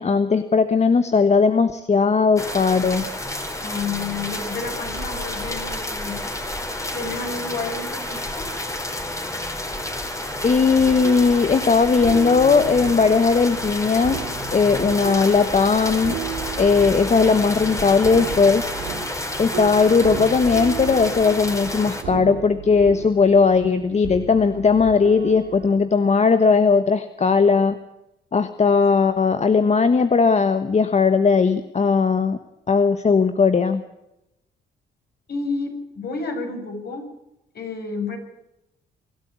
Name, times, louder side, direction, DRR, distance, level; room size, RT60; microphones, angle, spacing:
voice 1, 0.0-3.0 10.4-16.2 16.6-18.7 19.4-27.8 28.3-32.4 32.7-33.8, left 5 dB, 35° left, 10 dB, 1.3 m, -18 dB
sound 1, 2.4-22.0, left 1 dB, 15° left, 3.7 m, -30 dB
voice 2, 3.6-6.2 6.9-8.5 35.3-37.1 37.5-38.2, left 4 dB, 55° left, 3 dB, 6.9 m, -30 dB
sound 2, 10.7-25.8, right 9 dB, 90° right, 3.2 m, -34 dB
24.0 x 12.5 x 8.6 m, 0.89 s
cardioid pair, 90°, 20 cm